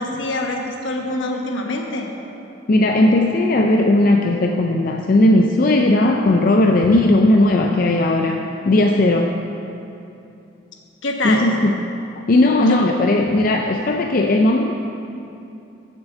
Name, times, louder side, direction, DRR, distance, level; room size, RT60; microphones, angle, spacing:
voice 1, 0.0-2.1 11.0-11.5 12.7-12.9, left 2 dB, 75° left, 2 dB, 1.1 m, -24 dB
voice 2, 2.7-9.3 11.2-11.8 12.3-14.7, left 1 dB, 45° left, 2 dB, 0.4 m, -16 dB
7.1 x 6.6 x 7.3 m, 2.7 s
head